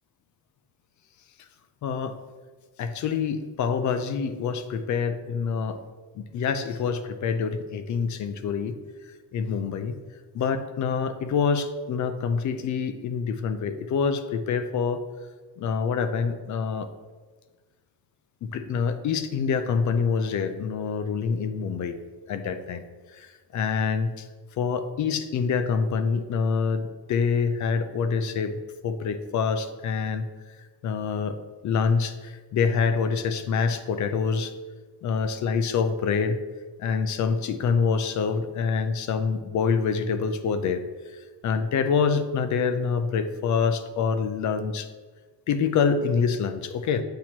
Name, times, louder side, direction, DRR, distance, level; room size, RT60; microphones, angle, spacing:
voice 1, 1.8-2.2 2.8-5.8 6.2-8.7 9.3-9.9 10.3-15.0 15.6-16.9 18.4-22.0 22.3-22.8 23.1-24.3 24.6-30.2 30.8-31.4 31.6-34.5 35.0-36.4 36.8-40.8 41.1-44.9 45.5-47.0, left 5 dB, 45° left, 10 dB, 0.4 m, -26 dB
7.6 x 2.9 x 4.3 m, 1.4 s
cardioid pair, 160°, 41 cm